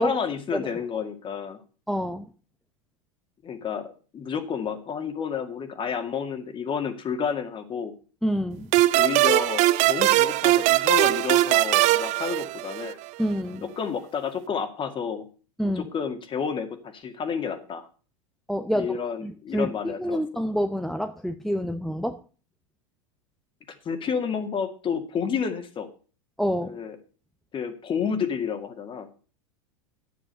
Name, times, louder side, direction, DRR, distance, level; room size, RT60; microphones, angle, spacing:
voice 1, 0.0-1.6 3.4-7.9 8.9-13.0 13.6-15.3 15.6-17.9 18.7-20.2 23.8-25.9 26.6-27.0 27.5-29.2, left 6 dB, 30° left, 8 dB, 2.1 m, -30 dB
voice 2, 1.9-2.3 8.2-8.7 13.2-13.7 15.6-15.9 18.5-19.7 20.0-22.2 26.4-26.8, equal, ahead, 8 dB, 0.7 m, -27 dB
sound 1, 8.7-13.1, right 17 dB, 45° right, 0.5 m, -21 dB
9.9 x 7.4 x 6.7 m, 0.38 s
hypercardioid pair, 95°, 17 cm